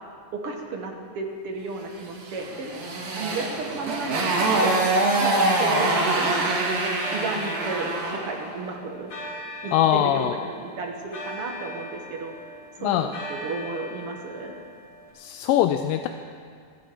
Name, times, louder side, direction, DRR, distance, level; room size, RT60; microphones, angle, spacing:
voice 1, 0.3-2.7 3.2-4.9 5.2-6.6 7.1-9.1 9.6-12.3 12.8-14.6, right 3 dB, 55° right, 2 dB, 1.8 m, -32 dB
Motorcycle, 2.2-8.3, right 2 dB, 85° right, 3.9 m, -24 dB
sound 1, 2.5-4.0 4.6-15.1, equal, 40° left, 3.0 m, -40 dB
voice 2, 9.7-10.3 12.8-13.1 15.2-16.1, left 11 dB, 85° left, 7 dB, 2.2 m, -22 dB
26.0 x 9.2 x 4.6 m, 2.2 s
omnidirectional pair, 3.9 m